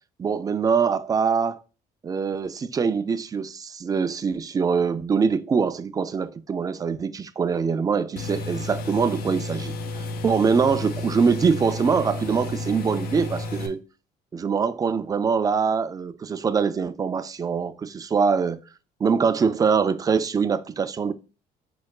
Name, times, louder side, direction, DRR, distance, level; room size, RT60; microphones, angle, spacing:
voice 1, 0.2-1.6 2.0-13.8 14.3-18.6 19.0-21.1, right 5 dB, 20° right, 0.3 m, -23 dB
sound 1, 8.2-13.7, left 2 dB, 65° left, 0.7 m, -32 dB
4.9 x 4.2 x 2.3 m
cardioid pair, 110°, 17 cm